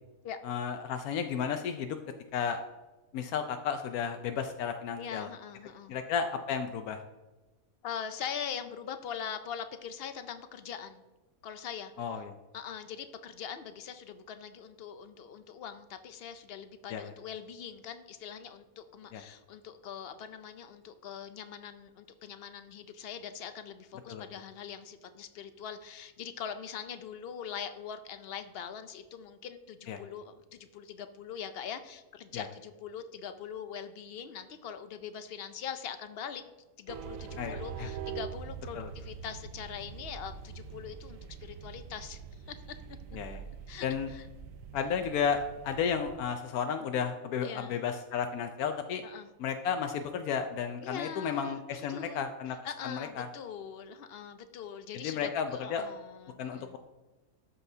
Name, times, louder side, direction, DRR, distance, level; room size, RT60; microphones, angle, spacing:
voice 1, 0.4-2.0 2.3-2.6 3.1-5.3 5.9-7.0 12.0-12.3 16.9-17.1 19.1-19.2 24.1-24.2 29.9-30.0 32.3-32.5 37.4-37.9 38.7-38.9 43.1-43.4 43.8-44.1 44.7-49.0 49.4-52.6 52.8-53.3 54.9-55.9 56.4-56.8, left 7 dB, 85° left, 7 dB, 1.1 m, -33 dB
voice 2, 5.0-5.9 7.8-11.0 11.4-11.9 12.5-36.4 36.8-42.2 42.5-42.6 43.7-43.9 44.1-44.2 47.4-47.8 49.0-49.3 50.8-51.6 51.9-52.3 52.6-56.8, left 7 dB, 60° left, 10 dB, 0.6 m, -42 dB
sound 1, 36.9-46.2, right 7 dB, 70° right, 0.9 m, -44 dB
13.0 x 5.7 x 2.7 m, 1.1 s
omnidirectional pair, 1.5 m